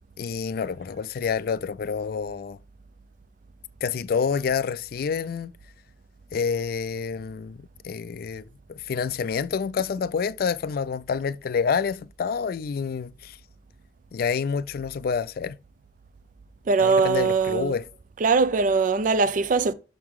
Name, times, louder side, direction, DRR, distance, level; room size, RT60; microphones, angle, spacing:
voice 1, 0.2-2.6 3.8-5.5 6.3-13.4 14.1-15.6 16.8-17.8, left 6 dB, 55° left, 0.3 m, -28 dB
voice 2, 16.7-17.8 18.2-19.7, right 4 dB, 45° right, 0.4 m, -21 dB
5.9 x 3.7 x 4.6 m
head